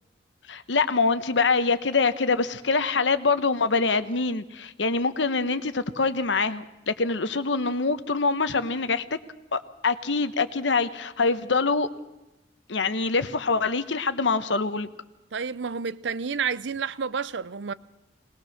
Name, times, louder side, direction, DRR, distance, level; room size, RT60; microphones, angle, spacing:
voice 1, 0.5-9.0 9.5-11.9 12.7-14.9, left 4 dB, 90° left, 1.0 m, -24 dB
voice 2, 15.3-17.7, right 6 dB, 80° right, 0.6 m, -30 dB
20.0 x 20.0 x 6.5 m
head